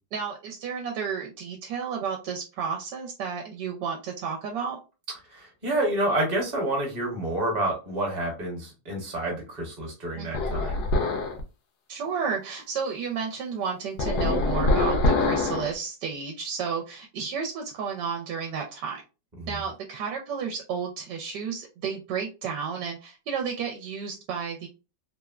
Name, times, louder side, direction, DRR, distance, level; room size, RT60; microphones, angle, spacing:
voice 1, 0.1-4.8 10.2-10.9 11.9-19.0 19.5-24.7, right 6 dB, 75° right, 2 dB, 1.1 m, -32 dB
voice 2, 5.3-10.8 19.4-19.5, right 1 dB, 30° right, 0 dB, 0.9 m, -28 dB
sound 1, 10.3-11.4 14.0-15.7, left 2 dB, 70° left, 1.0 m, -24 dB
3.4 x 2.1 x 2.3 m, 0.30 s
omnidirectional pair, 2.0 m